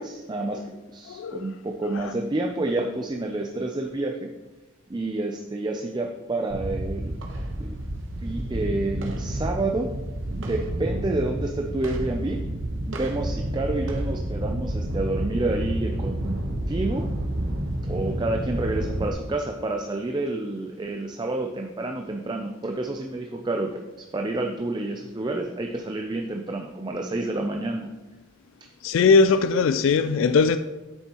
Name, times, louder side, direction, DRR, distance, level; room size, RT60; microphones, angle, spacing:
voice 1, 0.0-4.3 4.9-7.1 7.6-7.8 8.2-9.9 10.4-12.4 12.9-17.1 17.8-23.8 24.1-27.9, right 2 dB, 20° right, 0.4 m, -29 dB
voice 2, 1.1-1.5 1.9-2.1 28.8-30.6, left 4 dB, 70° left, 0.3 m, -20 dB
sound 1, 6.5-19.1, right 1 dB, 70° right, 1.0 m, -30 dB
8.8 x 7.3 x 2.9 m
head